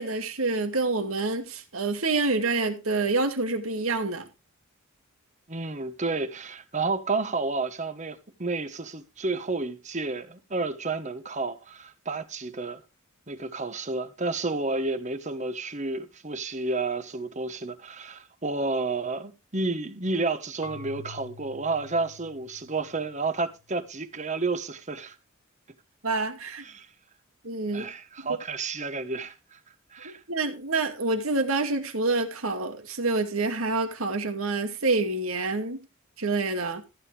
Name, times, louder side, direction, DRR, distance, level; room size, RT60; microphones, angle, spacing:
voice 1, 0.0-4.3 26.0-26.6 27.4-27.9 30.0-35.8 36.2-36.8, right 3 dB, 90° right, 2.4 m, -27 dB
voice 2, 5.5-12.8 13.3-25.2 26.6-26.9 27.7-29.6 29.9-30.2, right 3 dB, 35° right, 1.2 m, -31 dB
Marimba xylophone / Wood, 20.6-23.5, left 3 dB, 70° left, 2.0 m, -46 dB
14.5 x 9.3 x 3.4 m
head